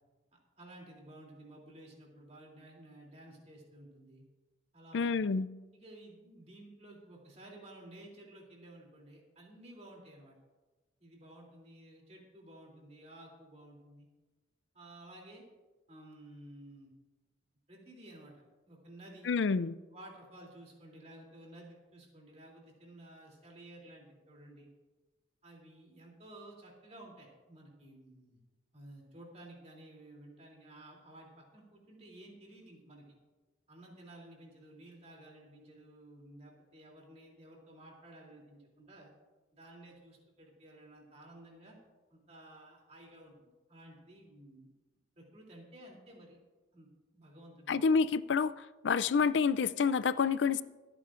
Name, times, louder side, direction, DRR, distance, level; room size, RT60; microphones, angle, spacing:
voice 1, 0.3-4.2 4.7-5.4 5.7-10.3 11.0-14.1 14.7-15.4 15.9-16.9 17.7-18.3 18.7-19.6 19.9-24.7 25.4-28.4 28.7-33.1 33.7-39.1 39.5-41.8 42.1-44.7 45.2-46.4 46.7-47.7, right 1 dB, 35° right, 3.0 m, -54 dB
voice 2, 4.9-5.5 19.3-19.7 47.7-48.5 48.8-50.6, left 5 dB, 80° left, 0.4 m, -28 dB
26.0 x 9.1 x 2.5 m
head